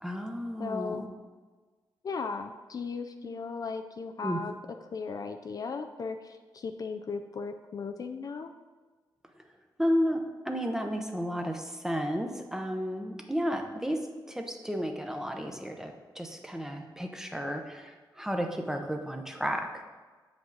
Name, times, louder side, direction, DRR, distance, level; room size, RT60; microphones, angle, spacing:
voice 1, 0.0-1.1 4.2-4.4 9.8-19.8, equal, 5° right, 4 dB, 0.7 m, -32 dB
voice 2, 0.6-1.1 2.0-4.6 4.9-8.5, left 4 dB, 50° left, 7 dB, 0.4 m, -36 dB
7.1 x 5.2 x 3.9 m, 1.4 s
cardioid pair, 95°, 8 cm